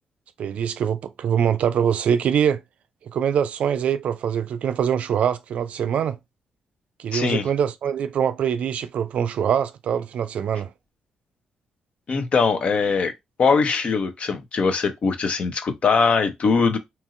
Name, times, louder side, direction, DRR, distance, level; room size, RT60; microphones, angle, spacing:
voice 1, 0.4-2.6 3.0-6.2 7.0-10.7, right 8 dB, 70° right, 0.3 m, -23 dB
voice 2, 7.1-7.4 12.1-13.1 13.4-16.8, left 5 dB, 55° left, 0.6 m, -21 dB
2.9 x 2.7 x 2.4 m
supercardioid pair, 60°, 2 cm